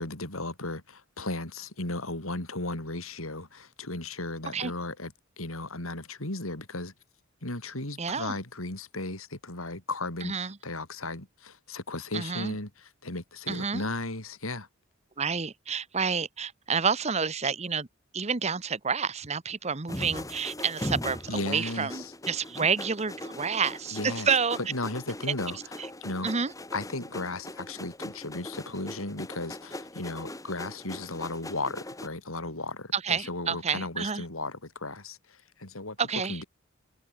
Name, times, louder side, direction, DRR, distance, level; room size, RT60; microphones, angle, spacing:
voice 1, 0.0-6.9 7.4-14.7 21.3-22.1 23.9-24.3 24.6-26.3 26.7-36.0 36.3-36.4, left 2 dB, 80° left, 4.6 m, -35 dB
voice 2, 8.0-8.4 10.2-10.5 12.1-12.5 13.5-13.8 15.2-17.9 18.1-24.6 26.2-26.5 32.9-34.2 36.0-36.4, right 5 dB, 30° right, 1.0 m, -29 dB
sound 1, 19.9-32.1, left 1 dB, 15° left, 3.2 m, -40 dB
head